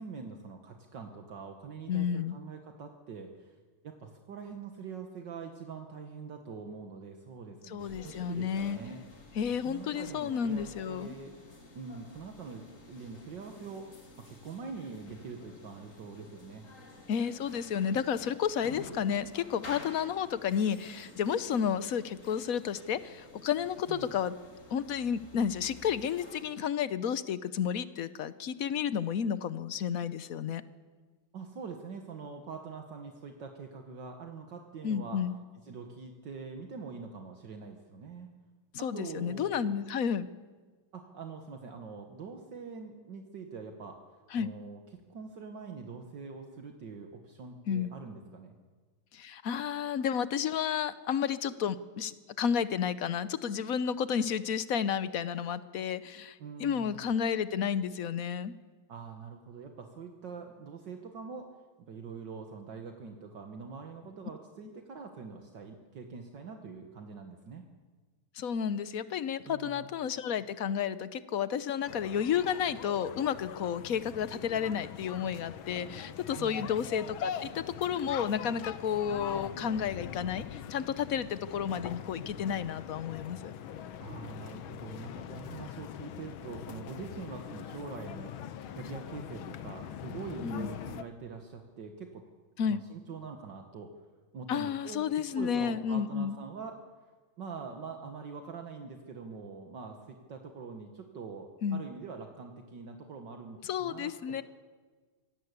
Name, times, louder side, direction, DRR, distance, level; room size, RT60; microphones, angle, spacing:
voice 1, 0.0-3.6 3.8-9.0 9.6-11.4 11.7-16.7 23.9-24.1 31.3-35.2 35.6-38.4 38.8-39.7 40.9-44.0 44.4-48.6 56.4-57.1 58.9-61.5 61.8-67.7 69.5-69.9 76.4-76.8 84.0-92.2 92.6-93.9 94.3-95.1 95.3-96.8 97.4-104.4, right 5 dB, 65° right, 4 dB, 2.1 m, -44 dB
voice 2, 1.9-2.4 7.7-8.8 9.4-11.1 17.1-24.3 24.7-30.6 34.8-35.4 38.8-40.3 44.3-44.5 47.7-47.9 49.1-58.5 68.3-83.5 90.4-90.7 92.6-92.8 94.5-96.4 101.6-101.8 103.6-104.4, left 8 dB, 55° left, 15 dB, 1.0 m, -31 dB
sound 1, 7.8-26.4, left 2 dB, 40° left, 3.0 m, -51 dB
sound 2, 71.9-91.0, left 9 dB, 90° left, 1.8 m, -42 dB
25.0 x 18.0 x 8.2 m, 1.4 s
omnidirectional pair, 2.2 m